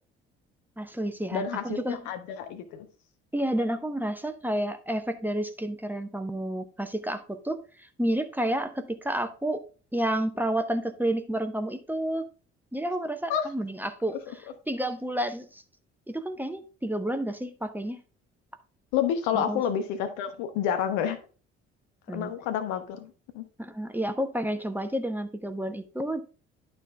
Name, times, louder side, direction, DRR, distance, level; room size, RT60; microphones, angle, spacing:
voice 1, 0.8-2.0 3.3-9.6 9.9-12.3 12.7-14.1 14.7-15.6 16.1-18.0 19.3-19.6 22.1-22.3 23.6-26.2, right 1 dB, 5° right, 7 dB, 1.0 m, -30 dB
voice 2, 1.3-2.9 13.3-13.5 14.3-14.4 18.9-21.2 22.1-23.4, left 9 dB, 65° left, 9 dB, 1.2 m, -29 dB
11.5 x 4.1 x 3.4 m, 0.36 s
figure-of-eight pair, 50°, 33 cm